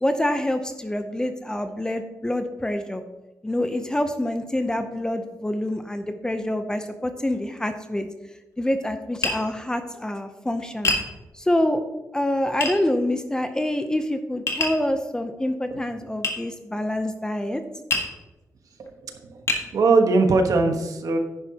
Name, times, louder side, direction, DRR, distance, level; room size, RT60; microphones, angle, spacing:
voice 1, 0.0-3.0 3.4-8.1 8.6-10.9 11.3-11.8 12.1-17.6, left 1 dB, 10° left, 7 dB, 0.6 m, -26 dB
Tap, 9.2-9.4 10.8-11.1 12.6-12.8 14.5-14.8 16.2-16.4 17.9-18.1 18.8-18.9 19.5-19.7, left 2 dB, 50° left, 1.6 m, -24 dB
voice 2, 19.0-19.4 19.7-21.2, right 3 dB, 65° right, 5 dB, 1.2 m, -20 dB
10.5 x 10.0 x 2.9 m, 1.1 s
wide cardioid pair, 145°, 6 cm